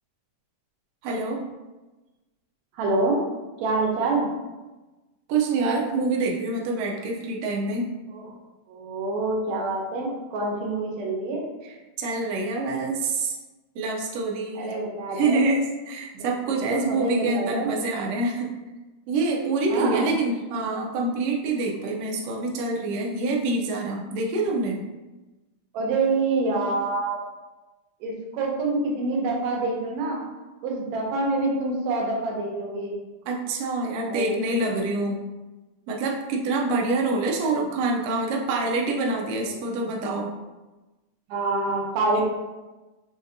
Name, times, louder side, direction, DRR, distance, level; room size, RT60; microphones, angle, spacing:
voice 1, 1.0-1.5 5.3-7.9 11.6-13.4 13.7-14.8 15.1-18.5 19.1-24.8 33.3-35.2 35.9-40.3, right 3 dB, 90° right, -1 dB, 1.4 m, -26 dB
voice 2, 2.8-3.2 3.6-4.3 8.1-8.2 8.7-11.4 14.6-15.4 16.1-16.3 16.6-17.7 19.7-20.1 25.7-27.2 28.0-30.2 30.6-33.0 34.1-34.9 41.3-42.2, right 3 dB, 75° right, -2 dB, 1.8 m, -26 dB
4.9 x 2.6 x 2.6 m, 1.1 s
omnidirectional pair, 3.5 m